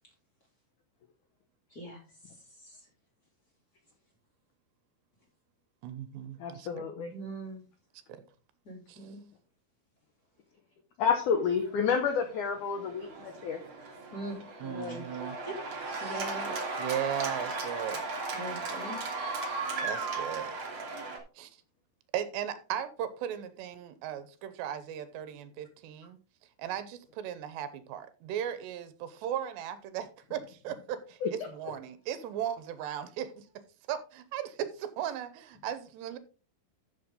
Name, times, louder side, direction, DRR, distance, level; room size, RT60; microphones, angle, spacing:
voice 1, 5.8-6.9 8.1-8.2 8.9-9.1 14.6-15.4 16.8-18.1 19.8-20.5 21.4-21.6 22.1-26.2 26.6-33.6 33.9-36.2, right 10 dB, 80° right, 3.0 m, -37 dB
voice 2, 6.4-7.1 11.0-13.6 14.6-15.1 31.2-31.5, left 6 dB, 80° left, 1.8 m, -30 dB
voice 3, 7.1-7.6 8.6-9.2 14.1-14.4 14.9-15.0 15.4-15.5 16.0-16.5 18.3-19.0, right 2 dB, 25° left, 2.6 m, -41 dB
Cheering / Applause, 11.5-21.2, right 3 dB, 40° right, 2.1 m, -36 dB
13.0 x 6.2 x 3.7 m
omnidirectional pair, 5.1 m